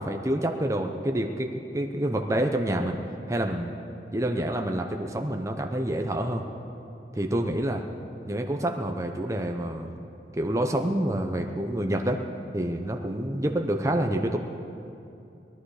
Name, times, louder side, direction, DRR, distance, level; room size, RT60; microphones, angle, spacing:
voice 1, 0.0-3.0 3.3-3.7 4.1-6.4 7.1-7.8 8.3-9.9 10.3-12.2 12.5-14.4, right 1 dB, 15° right, 4 dB, 0.7 m, -27 dB
20.5 x 11.5 x 4.9 m, 2.7 s
head